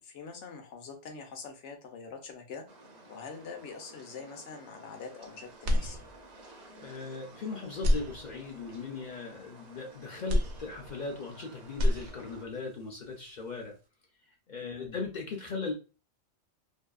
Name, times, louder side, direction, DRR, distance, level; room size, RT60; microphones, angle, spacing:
voice 1, 0.0-2.6 3.1-6.0 14.6-15.0, left 5 dB, 85° left, 4 dB, 1.0 m, -44 dB
sound 1, 2.7-12.5, right 2 dB, 50° right, 0.6 m, -53 dB
sound 2, 5.6-6.5 7.0-7.1 7.7-8.8 10.3-11.4 11.6-12.6, left 1 dB, 80° right, 0.9 m, -29 dB
voice 2, 6.8-13.8 14.5-15.7, left 4 dB, 55° left, 1 dB, 0.5 m, -38 dB
2.7 x 2.4 x 2.3 m, 0.32 s
omnidirectional pair, 1.2 m